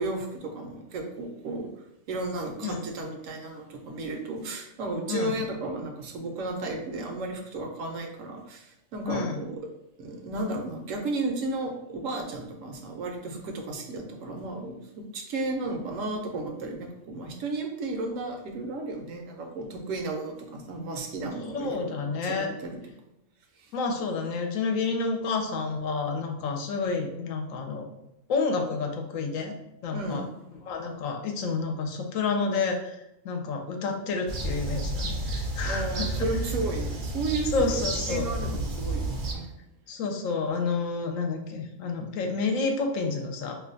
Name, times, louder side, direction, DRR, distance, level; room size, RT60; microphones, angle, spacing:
voice 1, 0.0-1.7 2.1-9.6 10.0-22.7 23.6-23.7 29.9-30.3 35.7-37.7 38.1-39.6, right 2 dB, 75° right, 3 dB, 1.0 m, -33 dB
voice 2, 9.1-9.4 21.5-22.6 23.7-27.8 28.3-29.5 29.8-30.3 30.6-33.0 33.2-36.1 37.5-38.3 39.9-43.5, left 4 dB, 80° left, 3 dB, 1.0 m, -29 dB
sound 1, 34.3-39.3, right 1 dB, 55° right, 0.5 m, -31 dB
2.6 x 2.2 x 3.8 m, 0.86 s
omnidirectional pair, 1.4 m